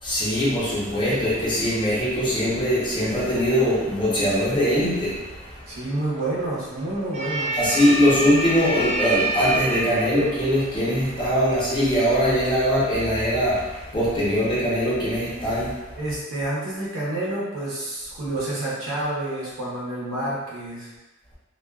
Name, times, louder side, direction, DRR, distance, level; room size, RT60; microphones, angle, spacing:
voice 1, 0.0-5.7 7.6-16.0, equal, 25° left, -8 dB, 0.6 m, -22 dB
sound 1, 3.1-14.4, right 1 dB, 30° right, 0.3 m, -32 dB
voice 2, 5.7-7.6 16.0-20.9, right 1 dB, 75° right, -7 dB, 0.8 m, -29 dB
2.4 x 2.2 x 2.3 m, 1.1 s
head